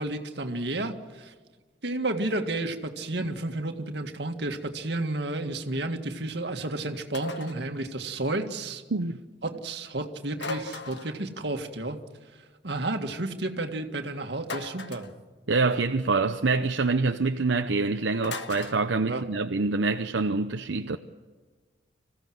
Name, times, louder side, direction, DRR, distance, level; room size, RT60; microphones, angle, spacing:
voice 1, 0.0-1.3 1.8-8.8 9.4-12.0 12.6-15.1 19.1-19.2, right 2 dB, 70° right, 1.9 m, -31 dB
sound 1, 7.1-7.6 10.4-11.2 14.4-15.1 18.2-18.8, left 3 dB, 75° left, 1.5 m, -37 dB
voice 2, 15.5-21.0, right 3 dB, 85° right, 0.8 m, -26 dB
26.0 x 15.5 x 7.8 m
head